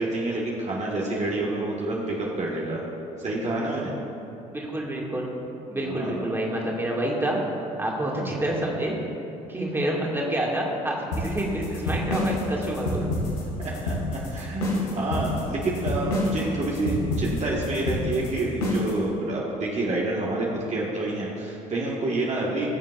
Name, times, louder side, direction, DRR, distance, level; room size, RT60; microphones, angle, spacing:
voice 1, 0.0-2.8 3.2-3.9 5.8-6.4 13.6-22.7, right 2 dB, 35° right, -4 dB, 1.6 m, -28 dB
voice 2, 4.5-5.3 5.7-7.4 7.8-9.0 9.5-13.1, right 1 dB, 10° right, -3 dB, 2.1 m, -28 dB
sound 1, 11.1-19.0, left 1 dB, 80° left, 2.0 m, -27 dB
19.5 x 7.3 x 2.5 m, 2.8 s
hypercardioid pair, 55°, 19 cm